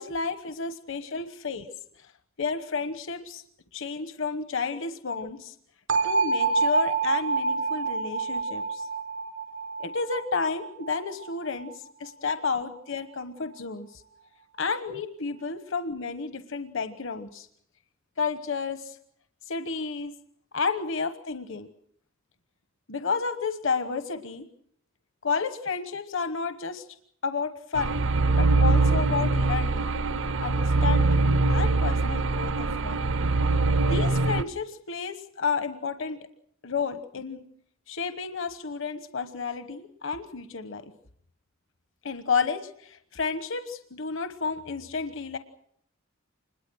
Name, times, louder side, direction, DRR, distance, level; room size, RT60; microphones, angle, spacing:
voice 1, 0.0-1.7 2.0-2.1 2.4-3.4 3.7-5.5 6.0-8.9 9.8-14.0 14.6-17.5 18.2-19.0 19.4-20.1 20.5-21.7 22.9-24.5 25.2-26.9 27.2-28.0 28.3-29.9 30.4-33.1 33.9-36.3 36.6-37.4 37.9-40.8 42.0-45.4, left 5 dB, 70° left, 9 dB, 1.1 m, -31 dB
sound 1, 5.9-11.7, right 4 dB, 90° right, 4.5 m, -27 dB
sound 2, 27.7-34.4, right 3 dB, 65° right, 0.8 m, -23 dB
26.5 x 21.5 x 6.3 m, 0.68 s
head